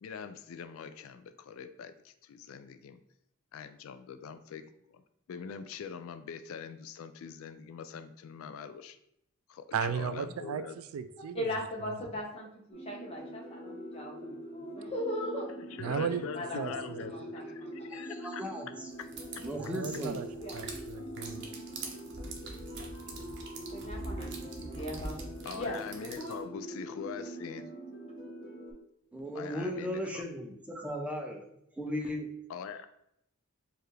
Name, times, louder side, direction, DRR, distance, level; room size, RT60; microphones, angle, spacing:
voice 1, 0.0-3.0 3.5-5.0 5.3-9.0 9.5-10.8 15.8-18.4 19.0-19.1 25.4-27.6 29.3-30.3 32.5-32.9, left 6 dB, 75° left, 11 dB, 0.3 m, -43 dB
voice 2, 9.7-11.5 15.8-16.2 16.6-17.0 19.6-20.3 20.5-21.4, right 7 dB, 80° right, 12 dB, 0.3 m, -35 dB
voice 3, 11.3-15.5 16.0-17.7 20.4-20.6 23.7-25.2 25.6-26.3, left 1 dB, 30° left, -1 dB, 0.8 m, -39 dB
sound 1, 12.7-28.7, equal, 55° left, 1.1 m, -44 dB
voice 4, 18.2-18.7 19.4-20.2 29.1-31.4 31.8-32.3, equal, 5° right, 1 dB, 0.5 m, -36 dB
sound 2, 19.0-26.4, right 2 dB, 55° right, 0.7 m, -44 dB
4.5 x 2.5 x 3.2 m, 0.77 s
head